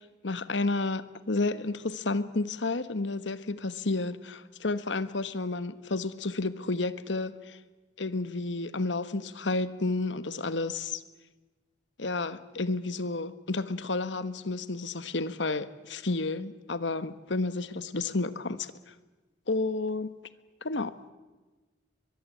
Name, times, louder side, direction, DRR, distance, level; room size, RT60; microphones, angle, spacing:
voice 1, 0.0-7.6 8.0-11.0 12.0-18.9 19.5-20.1 20.6-20.9, left 3 dB, 85° left, 1.3 m, -31 dB
23.0 x 22.5 x 8.5 m
head